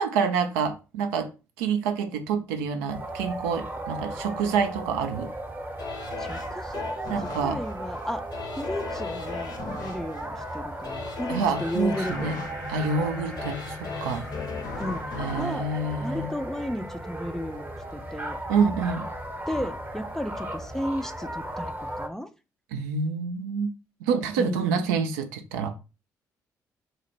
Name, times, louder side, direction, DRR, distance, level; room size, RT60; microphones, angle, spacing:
voice 1, 0.0-1.3 1.6-5.3 7.1-7.6 11.3-12.4 12.7-14.2 15.2-16.3 18.5-19.1 22.7-23.7 24.0-25.7, right 5 dB, 70° right, 0.4 m, -27 dB
sound 1, 2.9-22.1, right 1 dB, 20° right, 0.7 m, -36 dB
sound 2, 5.8-16.7 17.2-17.3, left 5 dB, 45° left, 0.7 m, -38 dB
voice 2, 6.2-7.1 7.4-8.3 8.6-12.3 14.8-15.1 15.4-15.7 16.0-18.4 19.5-22.3 24.4-24.8, left 1 dB, 5° left, 0.4 m, -34 dB
sound 3, 11.9-20.9, left 3 dB, 85° left, 1.5 m, -43 dB
3.9 x 2.1 x 3.2 m
figure-of-eight pair, 45°, 9 cm